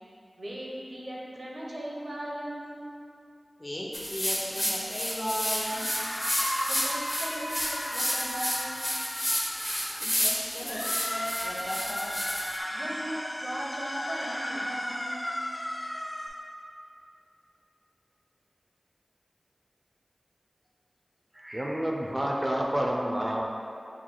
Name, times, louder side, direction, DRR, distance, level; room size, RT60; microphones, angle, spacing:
voice 1, 0.4-2.9 6.7-8.8 12.7-15.3, right 1 dB, 75° right, -4 dB, 0.8 m, -38 dB
voice 2, 3.6-6.0 10.0-12.2, equal, 45° left, -4 dB, 0.8 m, -36 dB
sound 1, 3.9-12.6, equal, 15° left, 0.6 m, -31 dB
sound 2, 5.6-10.0 10.6-16.3, equal, 75° left, 1.3 m, -35 dB
voice 3, 21.4-23.7, equal, 30° right, -1 dB, 0.5 m, -29 dB
6.2 x 2.2 x 3.7 m, 2.6 s
wide cardioid pair, 55°, 0 cm